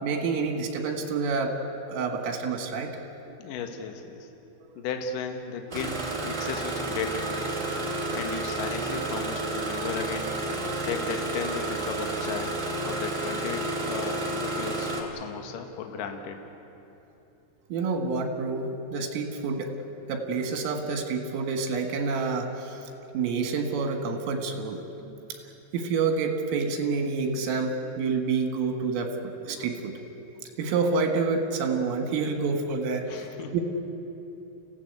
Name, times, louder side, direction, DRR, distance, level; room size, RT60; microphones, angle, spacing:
voice 1, 0.0-1.5 1.9-2.9 17.7-19.7 20.1-22.8 23.1-24.8 25.7-30.0 30.6-33.3 33.5-33.6, right 4 dB, 80° right, 4 dB, 4.4 m, -28 dB
voice 2, 3.4-4.3 4.8-7.4 8.1-10.4 10.9-12.5 12.8-16.4 33.0-33.6, left 6 dB, 60° left, 4 dB, 2.4 m, -35 dB
Engine starting, 5.7-15.0, right 2 dB, 30° right, 1.3 m, -31 dB
29.5 x 16.5 x 8.2 m, 3.0 s
omnidirectional pair, 5.8 m